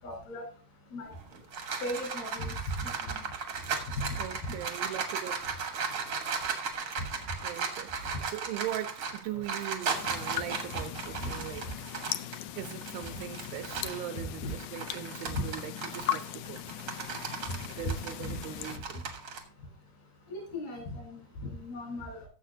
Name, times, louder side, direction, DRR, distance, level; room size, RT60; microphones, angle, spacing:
voice 1, 0.0-0.5 0.9-1.1 1.8-3.3 3.9-4.6 7.0-7.1 9.3-9.4 10.0-10.1 11.1-11.3 14.2-14.5 15.3-15.5 17.5-17.6 18.2-18.4 20.3-22.3, left 1 dB, 75° left, 6.5 m, -37 dB
sound 1, 1.1-14.1 14.5-19.4, right 5 dB, 60° right, 1.3 m, -36 dB
voice 2, 4.2-5.4 7.4-11.7 12.6-16.6 16.9-17.1 17.8-19.1, right 12 dB, 80° right, 2.2 m, -40 dB
sound 2, 9.9-18.8, left 12 dB, 90° left, 1.7 m, -39 dB
16.5 x 7.1 x 2.7 m
omnidirectional pair, 4.3 m